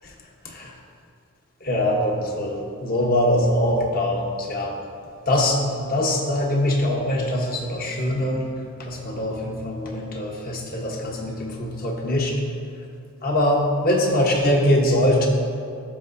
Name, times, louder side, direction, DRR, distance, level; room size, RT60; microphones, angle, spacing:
voice 1, 0.4-0.8 1.6-4.8 5.3-12.4 12.8-12.9 13.2-15.3, left 1 dB, 45° left, 0 dB, 1.1 m, -23 dB
14.0 x 5.5 x 2.7 m, 2.3 s
head